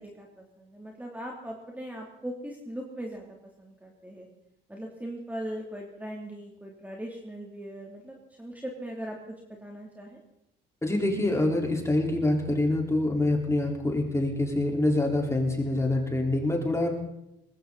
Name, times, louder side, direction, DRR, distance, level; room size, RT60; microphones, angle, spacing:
voice 1, 0.0-3.3 3.6-4.3 4.7-10.2, right 1 dB, 10° right, -1 dB, 3.1 m, -39 dB
voice 2, 10.8-16.9, left 2 dB, 15° left, 1 dB, 4.3 m, -26 dB
20.0 x 16.0 x 4.2 m, 0.83 s
cardioid pair, 90°, 20 cm